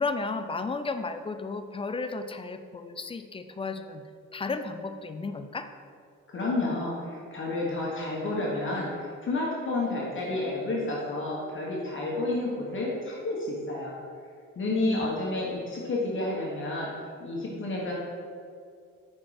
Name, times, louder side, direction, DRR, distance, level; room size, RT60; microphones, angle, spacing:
voice 1, 0.0-4.0 4.3-5.7 14.9-15.1, left 4 dB, 20° left, 8 dB, 0.4 m, -33 dB
voice 2, 6.3-13.9 14.5-16.9 17.2-17.9, left 2 dB, 40° left, -4 dB, 1.3 m, -30 dB
5.8 x 4.4 x 4.8 m, 2.2 s
cardioid pair, 90°, 30 cm